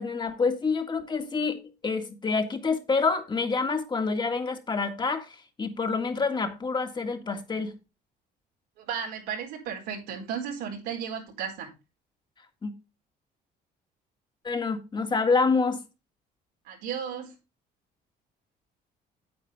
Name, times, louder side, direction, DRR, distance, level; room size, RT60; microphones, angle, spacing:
voice 1, 0.0-1.6 1.8-5.3 5.6-7.7 12.6-12.7 14.4-15.8, left 4 dB, 25° left, 1.8 m, -27 dB
voice 2, 8.8-11.7 16.6-17.3, right 7 dB, 90° right, 4.4 m, -34 dB
9.4 x 8.6 x 3.4 m
cardioid pair, 110°, 17 cm